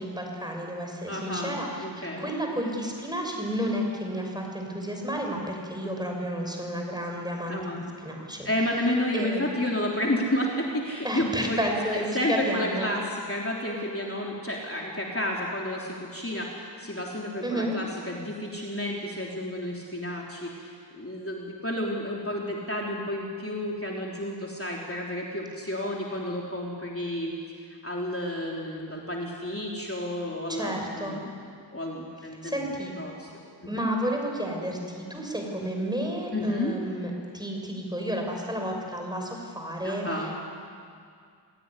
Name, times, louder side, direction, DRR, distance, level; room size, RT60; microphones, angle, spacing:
voice 1, 0.0-8.5 9.1-9.4 11.0-12.9 17.4-17.8 30.5-31.2 32.4-32.9 33.6-40.4, equal, 10° right, 1 dB, 6.2 m, -31 dB
voice 2, 1.1-2.6 7.5-7.8 8.4-31.3 31.7-32.6 33.0-33.3 33.6-33.9 36.3-36.8 39.8-40.3, left 1 dB, 30° left, -2 dB, 3.5 m, -31 dB
27.5 x 17.0 x 9.9 m, 2.3 s
wide cardioid pair, 40°, 45 cm